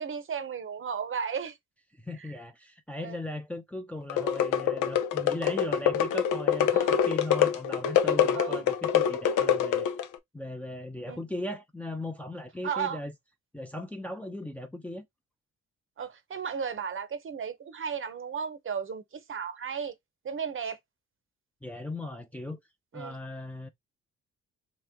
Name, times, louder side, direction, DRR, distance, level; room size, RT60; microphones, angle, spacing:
voice 1, 0.0-1.6 2.2-2.4 3.0-3.2 6.7-6.9 8.3-8.6 11.1-11.2 12.6-13.0 16.0-19.9 20.2-20.8 22.9-23.2, right 7 dB, 45° right, 0.8 m, -34 dB
voice 2, 2.0-9.9 10.3-13.1 13.5-15.1 21.6-22.6 22.9-23.7, left 1 dB, 5° left, 0.6 m, -37 dB
sound 1, 4.1-10.2, left 9 dB, 85° left, 0.7 m, -25 dB
3.3 x 3.1 x 3.5 m
cardioid pair, 90°, 30 cm